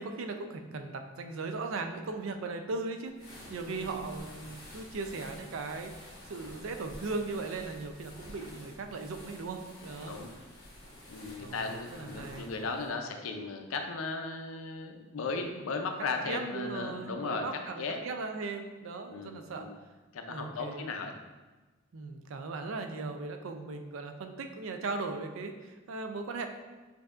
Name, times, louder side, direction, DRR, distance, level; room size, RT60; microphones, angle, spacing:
voice 1, 0.0-10.2 11.4-12.5 16.2-19.7 20.3-20.9 21.9-26.5, right 3 dB, 70° right, 6 dB, 0.4 m, -38 dB
sound 1, 3.1-12.9, left 1 dB, 50° left, 1.5 m, -49 dB
voice 2, 11.1-17.5 17.8-18.0 19.1-19.8 20.1-21.1, left 3 dB, 75° left, 4 dB, 0.5 m, -36 dB
6.5 x 2.7 x 2.4 m, 1.3 s
head